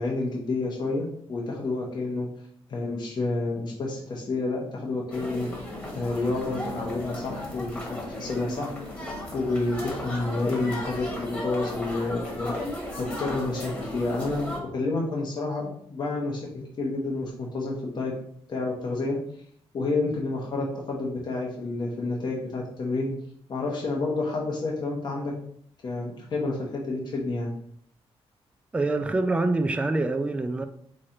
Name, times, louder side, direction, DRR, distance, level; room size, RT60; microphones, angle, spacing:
voice 1, 0.0-2.3 2.7-5.5 5.9-8.7 9.3-12.5 13.2-18.1 18.5-19.2 19.7-23.1 23.5-25.3 25.8-27.5, left 3 dB, 45° left, 0.9 m, -29 dB
sound 1, 5.1-14.6, left 1 dB, 15° left, 1.2 m, -35 dB
voice 2, 28.7-30.6, right 2 dB, 10° right, 0.4 m, -25 dB
3.7 x 3.2 x 4.3 m
cardioid pair, 130°, 10 cm